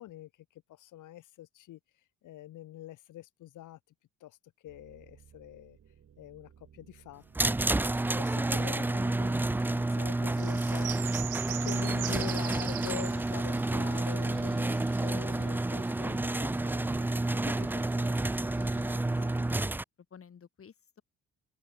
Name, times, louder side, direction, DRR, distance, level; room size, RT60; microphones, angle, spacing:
voice 1, 0.0-1.8 2.2-3.8 4.2-4.4 4.6-5.8 6.2-7.5 8.2-17.1 17.4-17.7 18.0-19.4, left 14 dB, 85° left, 4.4 m, -46 dB
sound 1, 4.7-17.7, right 8 dB, 55° right, 4.0 m, -57 dB
sound 2, 7.3-19.8, right 2 dB, 5° right, 0.4 m, -30 dB
sound 3, 10.4-16.1 16.8-16.9 17.8-17.9 18.3-18.9, right 16 dB, 90° right, 2.7 m, -42 dB
voice 2, 17.3-17.9 18.7-18.8 19.1-19.7 20.1-21.0, left 7 dB, 45° left, 5.3 m, -52 dB
open air
cardioid pair, 90°, 30 cm